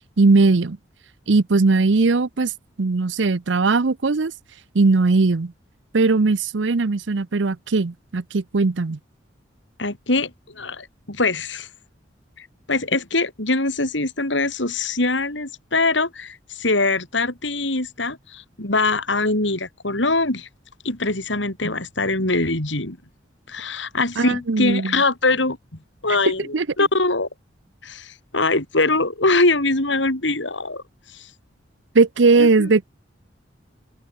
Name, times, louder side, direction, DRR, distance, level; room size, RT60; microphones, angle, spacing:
voice 1, 0.2-0.8 1.3-2.5 2.8-4.3 4.7-5.5 5.9-9.0 24.2-24.9 26.5-26.7 31.9-32.9, right 3 dB, 75° right, 0.7 m, -19 dB
voice 2, 9.8-11.7 12.4-20.5 20.8-23.0 23.5-25.6 26.0-27.3 27.8-30.8 31.1-31.3 32.4-32.7, left 2 dB, 75° left, 5.3 m, -23 dB
head